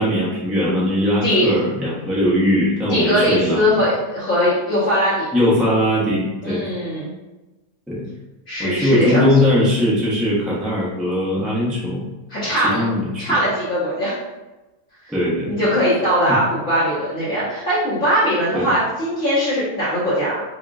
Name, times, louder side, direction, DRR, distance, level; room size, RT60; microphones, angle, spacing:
voice 1, 0.0-3.6 5.3-6.7 7.9-8.1 8.6-12.1 12.6-13.3 15.1-15.7 16.3-16.4 18.5-18.7, left 1 dB, ahead, -6 dB, 0.4 m, -20 dB
voice 2, 2.9-5.3 6.4-7.1 8.5-9.2 12.3-12.8 13.2-14.1 15.4-20.4, equal, 45° left, -13 dB, 1.5 m, -20 dB
5.1 x 2.6 x 2.4 m, 1.1 s
omnidirectional pair, 1.9 m